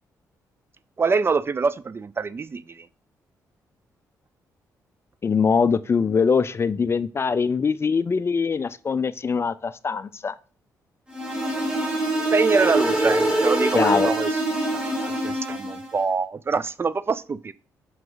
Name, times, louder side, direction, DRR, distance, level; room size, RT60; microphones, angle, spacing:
voice 1, 1.0-2.9 12.3-14.3 14.7-17.5, right 4 dB, 35° right, 0.4 m, -25 dB
voice 2, 5.2-10.3 13.7-14.1, left 5 dB, 35° left, 0.4 m, -22 dB
sound 1, 11.1-15.9, right 1 dB, 15° right, 2.1 m, -24 dB
5.8 x 4.9 x 3.9 m
cardioid pair, 70°, 7 cm